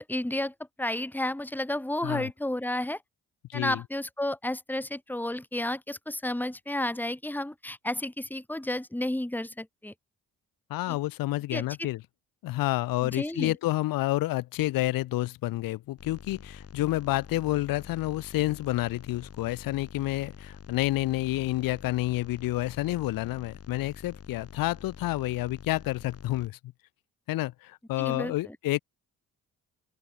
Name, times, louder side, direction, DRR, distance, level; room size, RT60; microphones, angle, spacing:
voice 1, 0.0-3.0 3.5-9.9 10.9-11.0 11.5-11.6 13.0-13.5 28.0-28.6, left 1 dB, 5° left, 2.1 m, -32 dB
voice 2, 3.5-3.8 10.7-12.0 12.4-26.6 27.3-28.8, left 17 dB, 65° left, 0.6 m, -29 dB
sound 1, 16.0-26.5, left 6 dB, 40° left, 1.6 m, -47 dB
open air
hypercardioid pair, 50°, 37 cm